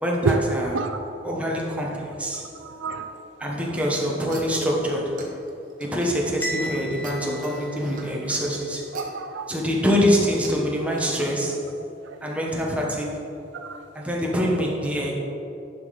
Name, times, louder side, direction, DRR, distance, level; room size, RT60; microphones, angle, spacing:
voice 1, 0.0-0.7 1.2-2.5 3.4-5.2 5.8-8.9 9.5-11.6 12.2-13.1 13.9-15.1, equal, 5° right, -3 dB, 1.2 m, -25 dB
voice 2, 2.6-3.1 8.9-9.5 12.0-12.2 13.5-13.8, right 4 dB, 70° right, 6 dB, 0.5 m, -27 dB
sound 1, 4.3-6.5 6.9-9.2 10.2-10.5 11.0-11.1, right 3 dB, 45° right, 1.2 m, -43 dB
Bell, 6.4-8.5, equal, 10° left, 0.9 m, -35 dB
11.0 x 5.2 x 4.1 m, 2.7 s
head